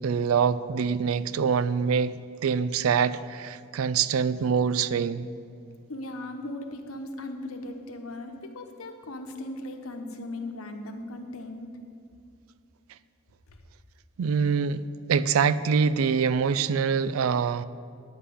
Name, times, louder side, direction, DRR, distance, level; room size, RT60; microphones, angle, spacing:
voice 1, 0.0-5.3 14.2-17.6, right 6 dB, 80° right, 0.4 m, -25 dB
voice 2, 5.9-11.7, left 1 dB, 85° left, 1.0 m, -38 dB
9.5 x 5.7 x 8.3 m
head